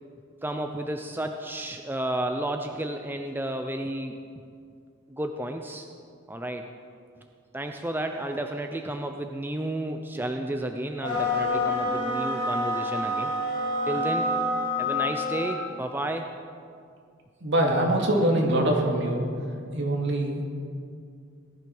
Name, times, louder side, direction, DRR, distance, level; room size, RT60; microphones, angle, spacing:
voice 1, 0.4-4.2 5.1-5.9 6.3-6.7 7.5-13.3 13.9-14.3 14.8-16.3, right 1 dB, 10° right, 4 dB, 0.6 m, -32 dB
sound 1, 11.0-15.6, left 1 dB, 25° left, 3.7 m, -27 dB
voice 2, 17.4-19.3 19.7-20.4, right 1 dB, 60° right, 0 dB, 2.6 m, -23 dB
18.0 x 12.0 x 6.1 m, 2.3 s
head